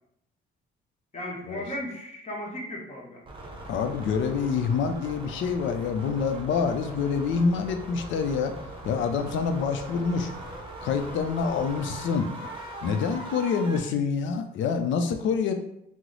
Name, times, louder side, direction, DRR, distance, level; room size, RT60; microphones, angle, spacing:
voice 1, 1.1-3.2, left 1 dB, 35° left, -2 dB, 1.0 m, -35 dB
sound 1, 3.3-13.8, right 1 dB, 25° right, 0.7 m, -40 dB
voice 2, 3.7-8.5 8.8-10.3 10.8-12.3 12.8-15.5, left 5 dB, 75° left, 7 dB, 0.4 m, -26 dB
3.0 x 2.0 x 3.8 m, 0.78 s
cardioid pair, 90°, 20 cm